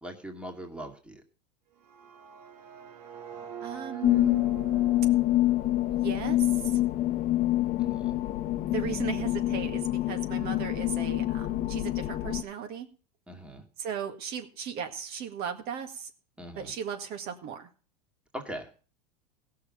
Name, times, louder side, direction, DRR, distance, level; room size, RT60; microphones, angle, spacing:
voice 1, 0.0-1.2 7.8-8.2 13.3-13.6 16.4-16.7 18.3-18.7, equal, 5° right, 2 dB, 2.2 m, -41 dB
sound 1, 1.7-7.7, right 7 dB, 75° right, 2.3 m, -46 dB
voice 2, 3.6-4.4 5.9-6.8 8.2-8.3 8.6-12.9 13.8-16.1 16.6-17.7, right 7 dB, 50° right, 5 dB, 1.9 m, -36 dB
sound 2, 4.0-12.4, left 15 dB, 40° left, 0.9 m, -26 dB
16.0 x 6.6 x 7.4 m, 0.38 s
hypercardioid pair, 110°, 21 cm